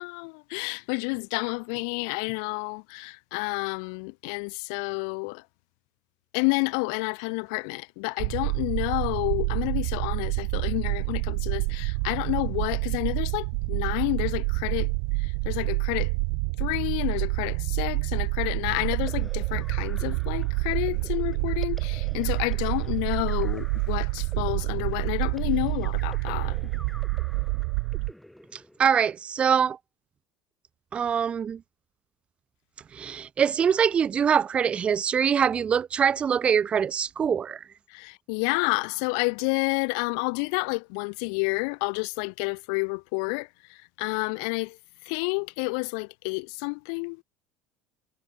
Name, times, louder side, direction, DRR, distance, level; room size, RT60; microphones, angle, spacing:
voice 1, 0.0-5.4 6.3-14.9 15.2-16.1 16.6-26.7 37.9-44.8 45.1-47.2, left 38 dB, 60° left, 0.4 m, -30 dB
sound 1, 8.2-28.1, right 40 dB or more, 60° right, 0.3 m, -28 dB
sound 2, 18.6-29.2, equal, ahead, 3.6 m, -49 dB
voice 2, 28.5-29.8 30.9-31.6 32.9-37.6, right 7 dB, 35° right, 1.1 m, -24 dB
figure-of-eight pair, 65°, 3 cm